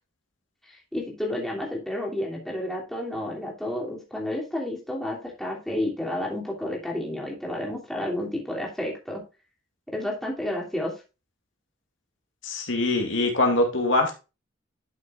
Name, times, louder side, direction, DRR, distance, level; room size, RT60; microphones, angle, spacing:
voice 1, 0.7-9.3 9.9-11.0, left 1 dB, ahead, -3 dB, 2.9 m, -31 dB
voice 2, 12.4-14.2, left 2 dB, 70° left, 3 dB, 2.3 m, -23 dB
12.0 x 6.4 x 2.5 m, 0.29 s
head